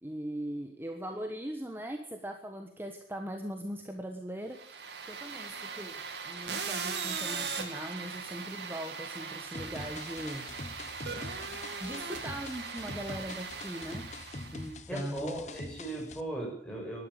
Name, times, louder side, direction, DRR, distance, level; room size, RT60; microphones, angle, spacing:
voice 1, 0.0-10.5 11.8-14.1 14.5-15.3, equal, 15° right, 4 dB, 1.2 m, -40 dB
sound 1, 4.5-14.7, right 5 dB, 80° right, 2.4 m, -39 dB
sound 2, 9.5-16.2, left 2 dB, 40° left, 1.0 m, -44 dB
voice 2, 14.9-17.1, right 1 dB, 5° left, -1 dB, 6.2 m, -38 dB
12.5 x 11.5 x 10.0 m, 0.66 s
head